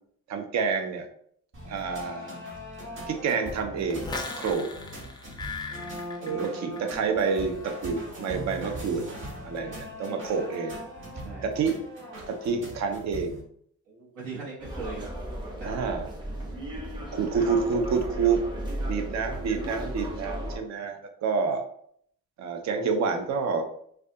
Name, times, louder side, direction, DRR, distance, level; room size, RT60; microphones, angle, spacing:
voice 1, 0.3-1.1 1.6-2.4 3.1-4.7 6.2-9.0 9.4-10.8 11.4-11.8 12.3-13.4 15.6-16.1 17.1-18.4 18.9-21.6 22.4-23.6, right 5 dB, 65° right, 5 dB, 0.5 m, -28 dB
sound 1, 1.5-13.4, equal, 40° right, 1.0 m, -40 dB
sound 2, 3.9-7.0 7.2-7.7, left 3 dB, 15° left, 0.3 m, -38 dB
voice 2, 11.2-11.5 13.9-15.1 15.6-15.8 17.3-17.5 20.8-20.9, right 3 dB, 80° right, -8 dB, 0.9 m, -40 dB
sound 3, 14.6-20.6, right 1 dB, 15° right, 0.7 m, -35 dB
2.3 x 2.2 x 2.7 m, 0.65 s
cardioid pair, 90°, 30 cm